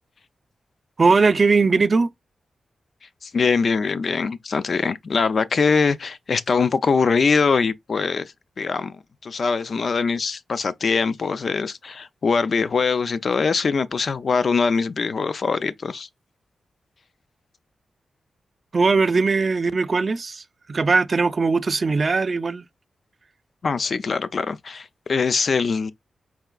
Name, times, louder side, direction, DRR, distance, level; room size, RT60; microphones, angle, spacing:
voice 1, 1.0-2.1 18.7-20.4 20.7-22.6, right 4 dB, 35° right, 0.3 m, -19 dB
voice 2, 3.2-16.1 23.6-25.9, left 5 dB, 50° left, 0.4 m, -22 dB
4.7 x 3.2 x 2.3 m
wide cardioid pair, 135°, 0 cm